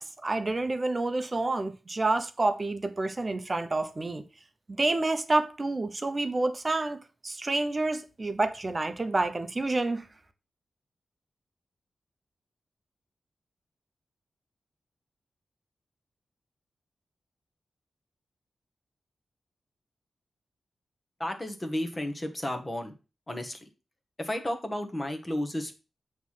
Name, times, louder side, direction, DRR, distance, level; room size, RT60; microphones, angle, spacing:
voice 1, 0.0-4.2 4.8-10.1, right 2 dB, 25° right, 0.8 m, -28 dB
voice 2, 21.2-22.9 23.3-23.6 24.2-25.7, left 1 dB, 20° left, 1.1 m, -32 dB
7.9 x 3.2 x 5.6 m
wide cardioid pair, 150°, 0 cm